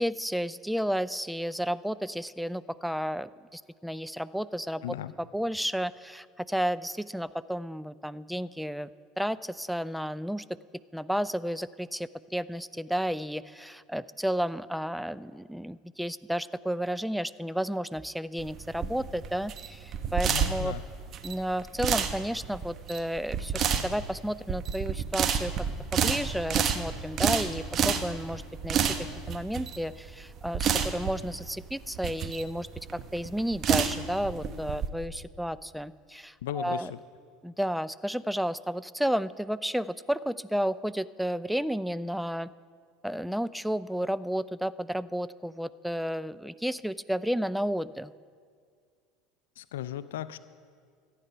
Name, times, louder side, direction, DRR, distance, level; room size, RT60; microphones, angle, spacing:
voice 1, 0.0-8.9 9.2-10.4 10.9-20.7 21.2-25.5 25.9-29.0 29.3-36.9 37.4-42.5 43.0-48.1, equal, ahead, 17 dB, 0.3 m, -32 dB
voice 2, 4.8-5.1 20.3-20.8 36.4-36.9 49.6-50.4, left 12 dB, 85° left, 14 dB, 0.4 m, -36 dB
sound 1, 18.4-34.9, right 7 dB, 45° right, 0.9 m, -30 dB
14.5 x 8.9 x 5.6 m, 2.1 s
hypercardioid pair, 90°, 0 cm